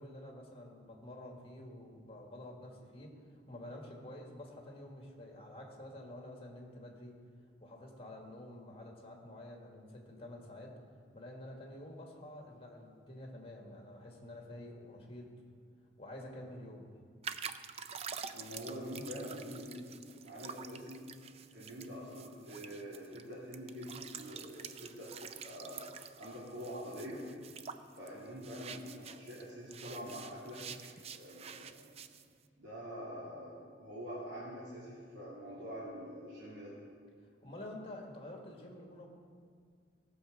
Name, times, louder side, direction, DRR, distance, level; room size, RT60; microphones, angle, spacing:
voice 1, 0.0-3.2 3.5-7.2 7.6-10.8 11.1-15.3 16.0-16.9 37.4-39.1, left 1 dB, 30° left, 1 dB, 1.7 m, -49 dB
sound 1, 17.2-29.5 29.7-32.2, right 7 dB, 35° right, 0.4 m, -47 dB
voice 2, 18.3-20.0 20.2-21.0 21.5-25.8 26.2-27.2 27.9-30.6 31.1-31.9 32.6-36.7, equal, 90° right, -9 dB, 2.6 m, -45 dB
17.0 x 6.8 x 5.1 m, 2.1 s
head